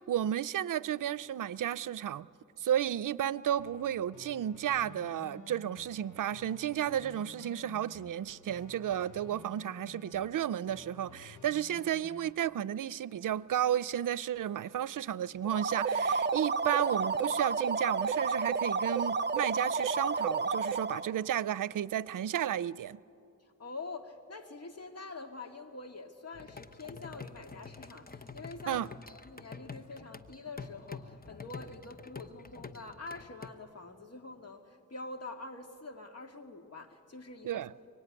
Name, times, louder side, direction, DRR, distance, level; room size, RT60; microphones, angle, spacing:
voice 1, 0.0-2.3 2.6-23.0 28.7-28.9 37.4-37.7, right 10 dB, 85° right, 0.5 m, -33 dB
sound 1, 3.6-12.3, left 5 dB, 70° left, 1.2 m, -53 dB
sound 2, 15.4-21.1, right 4 dB, 35° right, 0.7 m, -31 dB
voice 2, 23.6-37.7, left 3 dB, 50° left, 2.2 m, -46 dB
sound 3, 26.3-33.5, left 4 dB, 30° left, 1.1 m, -47 dB
24.5 x 24.0 x 9.7 m
cardioid pair, 65°, 31 cm